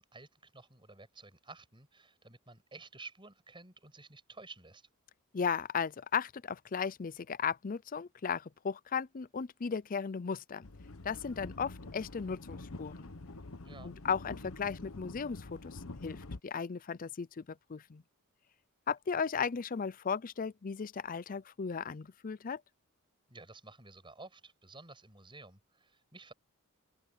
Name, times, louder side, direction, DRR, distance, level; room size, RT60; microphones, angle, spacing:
voice 1, 0.0-4.9 13.6-13.9 23.3-26.3, right 3 dB, 25° right, 7.5 m, -52 dB
voice 2, 5.3-10.7 11.0-13.1 13.8-18.0 18.9-22.6, left 6 dB, 40° left, 0.5 m, -36 dB
sound 1, 10.6-16.4, left 2 dB, 65° left, 1.1 m, -46 dB
head